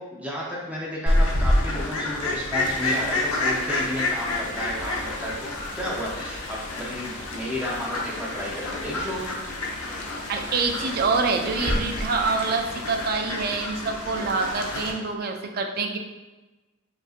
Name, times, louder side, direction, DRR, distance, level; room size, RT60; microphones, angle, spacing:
voice 1, 0.0-5.5 5.7-9.3, left 1 dB, 5° right, -4 dB, 0.7 m, -32 dB
Fowl, 1.1-14.9, left 1 dB, 90° left, 0.7 m, -28 dB
sound 1, 2.6-13.1, left 1 dB, 35° left, 0.6 m, -42 dB
voice 2, 10.3-16.0, right 4 dB, 45° right, 4 dB, 0.3 m, -26 dB
5.1 x 2.6 x 2.4 m, 1.1 s
head